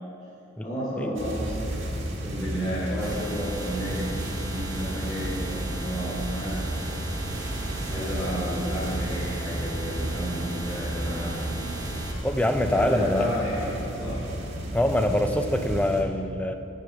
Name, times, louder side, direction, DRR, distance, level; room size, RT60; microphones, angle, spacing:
voice 1, 0.6-1.8 2.2-7.0 7.9-11.7 12.6-14.2, equal, 25° left, -10 dB, 2.3 m, -32 dB
sound 1, 1.1-16.0, right 1 dB, 75° right, 1.7 m, -33 dB
sound 2, 3.0-12.1, right 1 dB, 20° right, 1.0 m, -37 dB
voice 2, 12.2-13.4 14.7-16.5, left 1 dB, 5° left, 7 dB, 0.5 m, -24 dB
10.5 x 8.7 x 4.9 m, 2.9 s
head